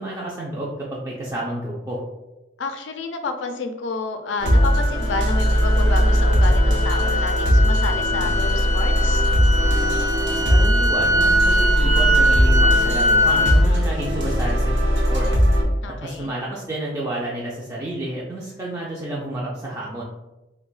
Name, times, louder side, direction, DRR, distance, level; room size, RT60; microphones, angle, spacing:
voice 1, 0.0-2.0 10.5-15.5 16.0-20.0, right 1 dB, 20° right, -6 dB, 0.4 m, -30 dB
voice 2, 2.6-9.2 15.8-16.4, left 3 dB, 75° left, 6 dB, 0.4 m, -30 dB
sound 1, 4.4-15.6, equal, 70° right, 0.7 m, -19 dB
sound 2, 4.4-13.6, equal, 90° right, 1.0 m, -23 dB
2.8 x 2.2 x 3.9 m, 1.0 s
head